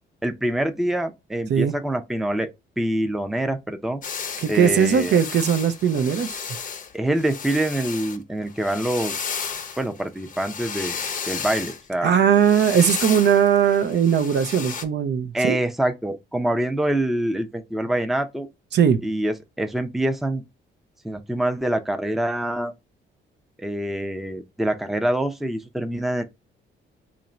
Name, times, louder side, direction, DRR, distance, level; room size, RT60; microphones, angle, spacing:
voice 1, 0.2-2.5 2.8-4.0 4.5-5.2 6.9-9.5 9.8-11.0 11.3-12.1 15.3-18.5 19.0-20.4 21.0-22.7 23.6-26.2, right 1 dB, ahead, 0.5 m, -25 dB
sound 1, 4.0-8.2 8.5-11.8 12.3-14.8, left 6 dB, 40° left, 0.7 m, -33 dB
voice 2, 4.4-6.3 12.0-15.6 18.7-19.0, right 8 dB, 60° right, 0.6 m, -19 dB
3.0 x 2.6 x 4.2 m
cardioid pair, 90°, 20 cm